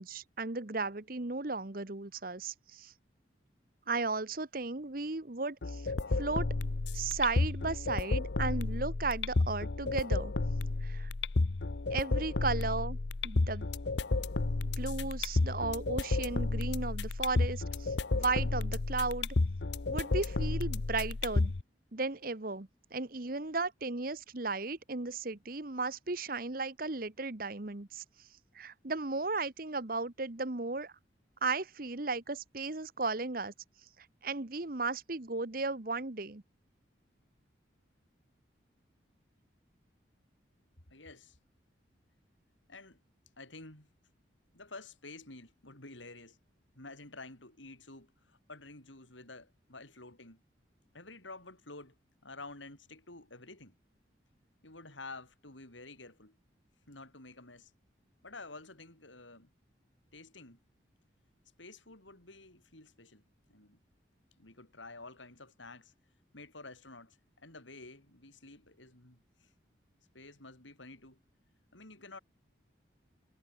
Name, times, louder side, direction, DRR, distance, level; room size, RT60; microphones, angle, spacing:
voice 1, 0.0-2.9 3.9-6.5 6.9-10.3 10.8-11.1 11.9-13.0 13.2-13.7 14.8-19.3 19.9-21.5 21.9-28.0 28.5-30.9 31.4-33.5 34.2-36.4, right 3 dB, 50° right, 1.2 m, -35 dB
sound 1, 5.6-21.6, left 3 dB, 65° left, 0.8 m, -32 dB
voice 2, 40.9-41.4 42.7-43.0 43.4-43.9 44.5-46.4 46.7-50.4 50.9-52.0 52.2-53.7 54.6-56.4 56.9-57.7 58.2-59.5 60.1-60.6 61.6-63.2 63.5-63.8 64.4-65.9 66.3-69.5 70.1-71.2 71.7-72.2, left 3 dB, 85° left, 7.7 m, -50 dB
head